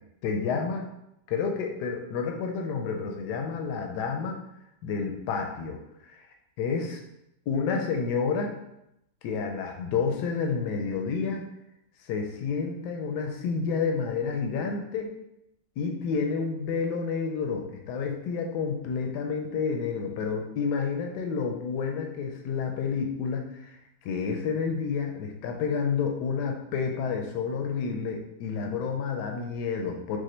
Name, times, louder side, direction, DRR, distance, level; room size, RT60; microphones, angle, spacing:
voice 1, 0.2-0.9 1.3-4.4 4.8-5.8 6.1-6.2 6.6-7.0 7.5-8.5 9.2-11.4 12.0-15.1 15.8-23.8 24.0-30.2, left 5 dB, 80° left, 3 dB, 1.2 m, -29 dB
4.9 x 2.2 x 4.3 m, 0.82 s
omnidirectional pair, 1.8 m